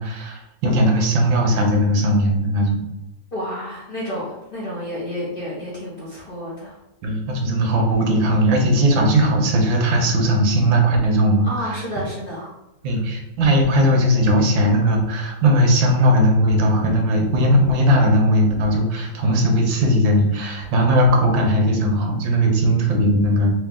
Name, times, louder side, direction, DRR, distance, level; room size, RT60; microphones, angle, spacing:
voice 1, 0.0-2.8 7.0-11.7 12.8-23.6, equal, 85° right, 2 dB, 1.6 m, -18 dB
voice 2, 3.3-6.8 11.4-12.5 12.9-13.0, equal, 40° left, -6 dB, 0.8 m, -30 dB
3.8 x 2.8 x 3.6 m, 0.95 s
omnidirectional pair, 2.0 m